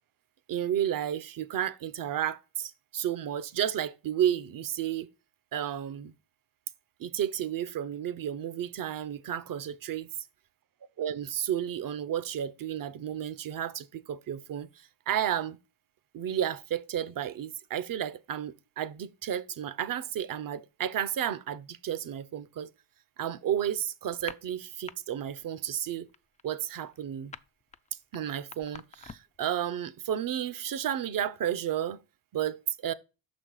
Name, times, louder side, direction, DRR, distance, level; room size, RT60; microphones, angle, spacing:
voice 1, 0.5-5.1 5.5-6.1 7.0-10.1 11.0-15.6 16.1-22.7 23.2-26.1 26.4-27.3 28.1-32.0 32.3-32.9, right 10 dB, 50° right, 0.7 m, -32 dB
sound 1, 24.1-25.0 25.3-25.6 25.9-29.4, left 5 dB, 15° left, 0.4 m, -46 dB
5.9 x 4.2 x 4.7 m
supercardioid pair, 65°, 45 cm